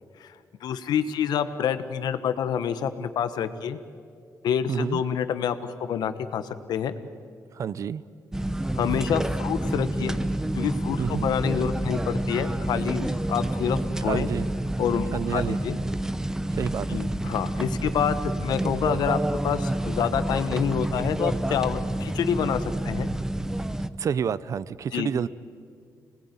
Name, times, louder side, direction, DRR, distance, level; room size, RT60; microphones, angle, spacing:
voice 1, 0.6-3.8 4.4-6.9 8.7-10.2 10.5-14.3 14.8-15.8 16.9-23.1 24.9-25.1, left 8 dB, 85° left, 11 dB, 1.3 m, -27 dB
voice 2, 4.7-5.0 7.5-8.0 11.0-11.3 14.0-14.5 15.1-15.6 16.5-17.0 24.0-25.3, right 7 dB, 50° right, 18 dB, 0.6 m, -29 dB
sound 1, 8.3-23.9, right 1 dB, 10° right, 0.7 m, -28 dB
27.0 x 19.5 x 9.5 m, 2.3 s
cardioid pair, 145°, 7 cm